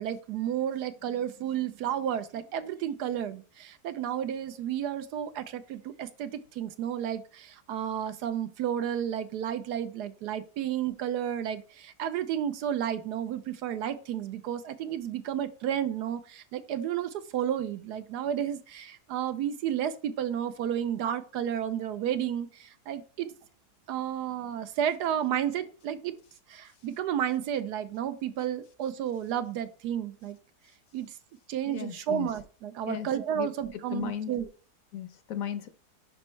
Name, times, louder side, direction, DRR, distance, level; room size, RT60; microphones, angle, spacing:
voice 1, 0.0-23.3 23.9-26.2 26.5-30.4 30.9-31.1 31.5-34.5, right 10 dB, 80° right, 11 dB, 1.2 m, -32 dB
voice 2, 31.7-32.3 32.8-33.1 33.3-33.5 33.7-34.3 34.9-35.7, left 9 dB, 65° left, 11 dB, 1.0 m, -35 dB
10.5 x 4.5 x 3.2 m, 0.40 s
omnidirectional pair, 1.7 m